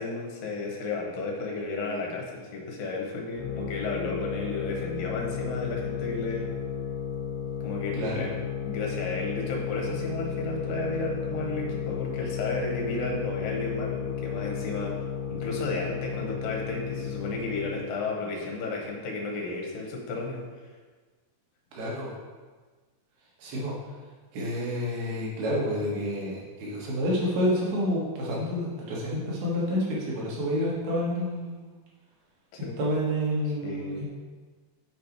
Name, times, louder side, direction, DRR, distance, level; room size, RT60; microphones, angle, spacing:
voice 1, 0.0-6.6 7.6-8.4 8.6-15.0 15.3-20.7 32.6-32.8 33.6-34.0, left 3 dB, 70° left, 0 dB, 2.9 m, -33 dB
sound 1, 3.4-17.9, left 7 dB, 90° left, 2.8 m, -33 dB
voice 2, 7.9-8.3 21.7-22.1 23.4-23.7 24.3-31.6 32.8-34.1, equal, 85° right, -4 dB, 3.6 m, -29 dB
7.9 x 5.2 x 4.6 m, 1.4 s
omnidirectional pair, 4.3 m